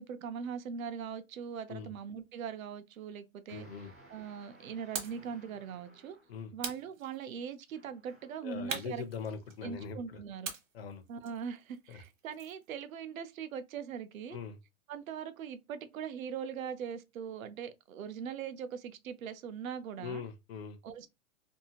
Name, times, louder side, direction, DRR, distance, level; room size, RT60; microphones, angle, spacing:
voice 1, 0.0-3.7 4.1-6.2 6.5-9.1 9.6-10.5 11.1-14.4 14.9-20.2 20.8-21.1, right 7 dB, 80° right, 0.6 m, -41 dB
voice 2, 3.5-3.9 6.3-6.5 8.4-10.2 10.7-11.0 11.9-12.0 14.3-14.6 20.0-20.8, left 6 dB, 50° left, 0.5 m, -41 dB
sound 1, 3.5-6.5 7.7-8.5, right 1 dB, 15° right, 0.3 m, -60 dB
sound 2, 4.9-5.3 6.6-7.5 8.7-9.8 10.4-12.7, right 6 dB, 65° right, 1.0 m, -42 dB
2.7 x 2.4 x 2.8 m
hypercardioid pair, 165°, 41 cm